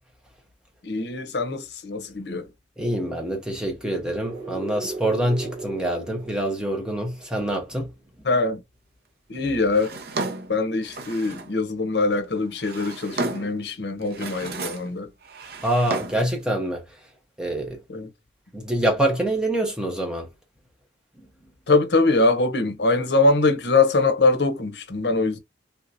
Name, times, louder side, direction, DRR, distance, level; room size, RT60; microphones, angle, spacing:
voice 1, 0.8-2.5 8.2-8.6 9.3-9.9 10.5-15.1 17.9-18.1 21.7-25.4, left 3 dB, 65° left, 0.8 m, -22 dB
voice 2, 2.8-7.9 15.6-17.0 17.4-17.8 18.5-20.3, right 1 dB, 5° right, 0.9 m, -25 dB
sound 1, 3.7-7.5, right 4 dB, 30° right, 2.1 m, -38 dB
Drawer open or close, 9.7-11.6 12.4-13.6 14.0-14.9 15.2-16.4, right 3 dB, 55° right, 0.7 m, -33 dB
3.5 x 2.8 x 2.6 m
head